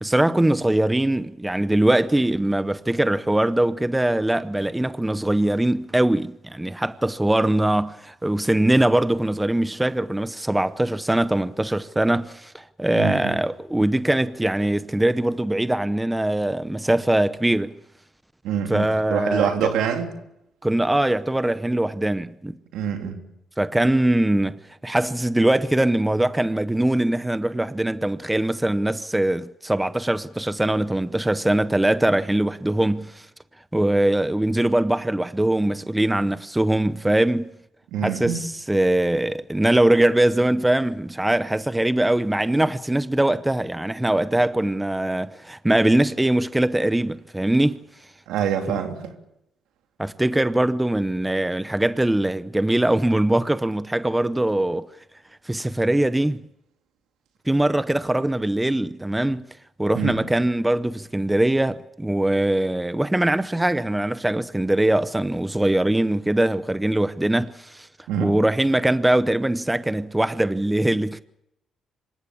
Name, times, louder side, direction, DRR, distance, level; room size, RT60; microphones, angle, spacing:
voice 1, 0.0-17.8 18.7-19.7 20.6-22.6 23.6-33.3 33.7-37.5 38.0-47.8 48.7-48.8 50.0-54.9 55.5-56.4 57.5-59.4 59.8-67.9 68.2-71.2, right 1 dB, 10° right, 0.7 m, -22 dB
voice 2, 12.9-13.4 18.4-20.1 22.7-23.2 37.9-38.4 48.3-49.1 59.9-60.1 68.1-68.3, right 8 dB, 90° right, 3.2 m, -25 dB
26.0 x 15.5 x 8.6 m
cardioid pair, 90°, 0 cm